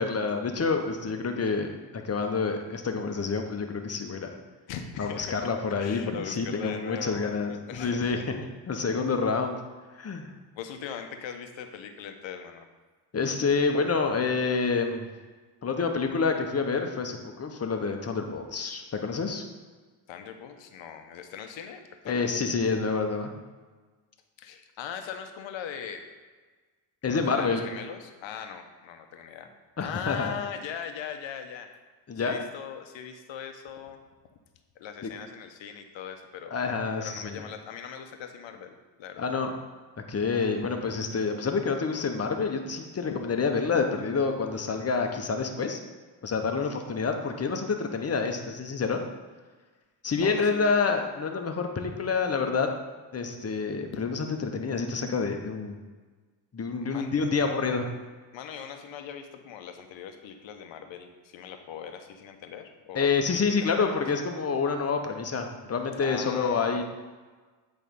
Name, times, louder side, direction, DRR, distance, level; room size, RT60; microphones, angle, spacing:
voice 1, 0.0-4.4 5.0-8.2 8.7-9.6 10.0-10.3 13.1-15.1 15.6-19.4 22.1-23.3 27.0-27.7 29.8-30.3 32.1-32.4 35.0-35.1 36.5-37.4 39.2-39.5 40.1-45.8 46.2-49.0 50.0-52.7 53.1-55.8 56.5-57.9 62.9-66.8, left 4 dB, 30° left, 4 dB, 1.1 m, -28 dB
voice 2, 4.7-5.5 5.8-8.2 10.5-12.7 20.1-22.3 24.4-26.0 27.1-29.5 29.8-31.7 32.1-34.0 34.8-36.6 37.0-39.3 50.2-50.8 56.8-57.1 58.3-64.0 66.0-66.8, left 8 dB, 70° left, 6 dB, 1.0 m, -40 dB
8.5 x 3.5 x 5.3 m, 1.3 s
supercardioid pair, 70°, 47 cm